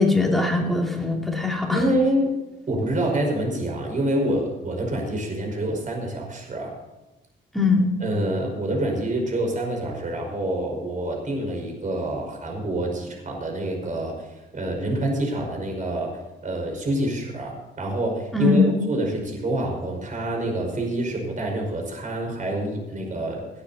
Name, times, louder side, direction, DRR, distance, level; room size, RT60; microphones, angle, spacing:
voice 1, 0.0-1.8 7.5-7.9 18.3-18.8, left 3 dB, ahead, -1 dB, 3.0 m, -21 dB
voice 2, 1.7-2.4 2.7-6.7 8.0-14.3 14.5-16.1 16.4-23.4, right 1 dB, 40° right, 1 dB, 5.2 m, -26 dB
18.5 x 9.6 x 4.2 m, 1.1 s
cardioid pair, 90°, 20 cm